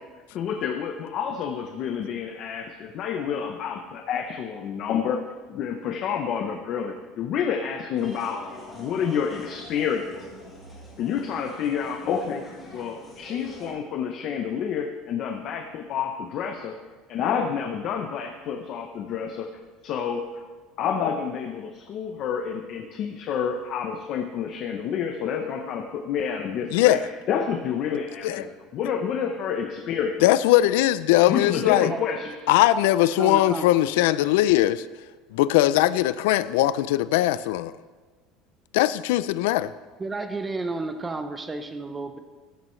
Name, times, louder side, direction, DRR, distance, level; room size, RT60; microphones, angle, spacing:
voice 1, 0.3-5.2 5.5-8.4 8.7-10.2 11.0-16.8 17.1-19.5 19.8-20.5 20.8-27.0 27.3-30.2 31.3-32.4, left 7 dB, 40° left, 5 dB, 0.7 m, -29 dB
sound 1, 7.9-13.7, left 1 dB, 10° left, 3.7 m, -44 dB
voice 2, 30.2-31.9 32.5-34.8 35.3-37.7 38.7-39.7, left 15 dB, 85° left, 16 dB, 0.4 m, -20 dB
voice 3, 33.1-34.3 40.0-42.2, right 3 dB, 10° right, 8 dB, 0.7 m, -32 dB
14.5 x 11.0 x 3.2 m, 1.4 s
cardioid pair, 170°, 0 cm